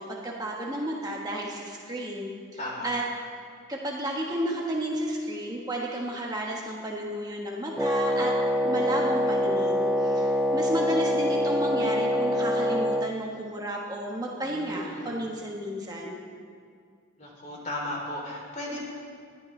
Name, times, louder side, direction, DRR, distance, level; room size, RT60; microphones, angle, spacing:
voice 1, 0.0-2.3 2.8-3.0 3.7-8.4 8.6-16.2, right 1 dB, 20° right, -2 dB, 1.3 m, -32 dB
voice 2, 2.6-2.9 14.4-15.2 17.2-18.9, left 1 dB, 40° left, -2 dB, 3.1 m, -36 dB
Wind instrument woodwind instrument, 7.8-13.1, equal, ahead, 0.4 m, -25 dB
21.0 x 12.5 x 3.3 m, 2.1 s
head